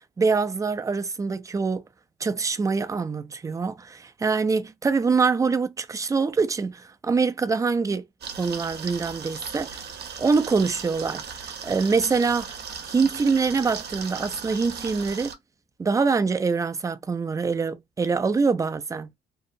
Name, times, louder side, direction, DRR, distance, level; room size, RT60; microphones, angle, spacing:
voice 1, 0.2-1.8 2.2-8.0 8.4-9.7 10.2-12.6 12.9-15.3 15.8-19.1, right 4 dB, 15° right, 0.3 m, -24 dB
sound 1, 8.2-15.3, right 6 dB, 55° right, 0.7 m, -37 dB
2.6 x 2.0 x 2.5 m
cardioid pair, 90°, 20 cm